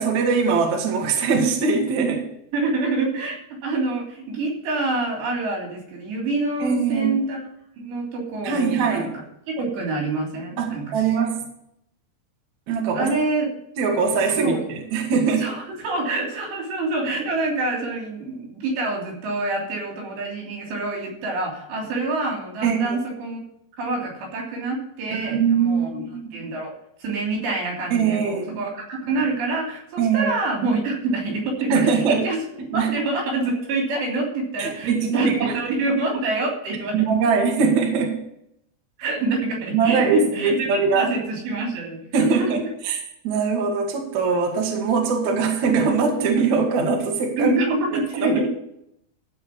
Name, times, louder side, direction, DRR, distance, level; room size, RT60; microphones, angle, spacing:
voice 1, 0.0-2.2 6.6-7.2 8.4-9.1 10.6-11.4 12.7-13.1 13.8-15.4 22.6-23.0 25.2-26.3 27.9-28.6 30.0-30.3 31.7-32.2 32.6-32.9 34.6-35.6 36.9-38.2 39.7-41.1 42.1-42.6 42.8-43.0 43.2-47.5 48.2-48.4, right 5 dB, 50° right, 1 dB, 2.6 m, -21 dB
voice 2, 2.5-3.4 3.6-7.4 7.8-9.2 9.6-11.0 12.9-13.5 14.4-14.6 15.4-23.4 23.8-26.0 26.3-26.7 27.0-32.4 32.7-37.3 39.0-42.5 47.4-48.5, right 3 dB, 80° right, -1 dB, 5.3 m, -26 dB
15.0 x 5.2 x 7.1 m, 0.76 s
omnidirectional pair, 4.9 m